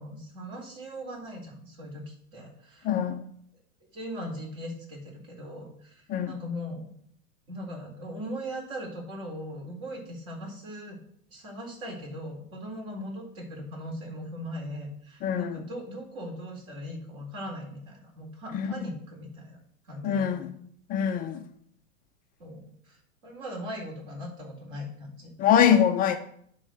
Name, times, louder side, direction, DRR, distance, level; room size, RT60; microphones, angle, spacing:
voice 1, 0.0-2.9 3.9-6.9 7.5-11.0 11.3-19.6 19.9-20.5 21.0-21.3 22.4-25.3, equal, 45° right, 4.1 m, -39 dB
voice 2, 2.8-3.2 6.1-6.3 15.2-15.5 18.5-18.7 20.0-20.5 20.9-21.4 25.4-26.2, left 9 dB, 20° left, 0.5 m, -23 dB
10.5 x 3.8 x 6.3 m
hypercardioid pair, 115°, 43 cm